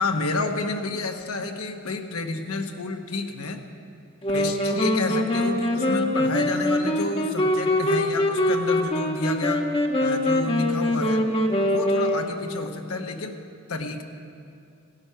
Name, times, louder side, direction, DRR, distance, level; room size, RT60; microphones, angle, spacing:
voice 1, 0.0-3.6 4.3-9.7 10.0-11.3 11.7-13.4 13.7-14.0, left 3 dB, 80° left, 4 dB, 1.1 m, -30 dB
sound 1, 4.2-12.7, left 1 dB, 25° left, 1.0 m, -23 dB
16.5 x 12.0 x 5.7 m, 2.5 s
head